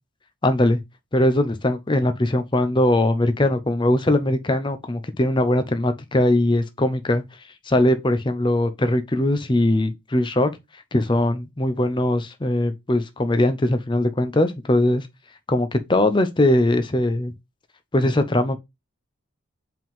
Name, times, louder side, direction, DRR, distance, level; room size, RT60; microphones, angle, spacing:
voice 1, 0.4-0.8 1.1-7.2 7.7-10.5 10.9-15.1 15.5-17.3 17.9-18.6, left 1 dB, 20° left, 0.6 m, -20 dB
5.2 x 3.7 x 5.4 m
head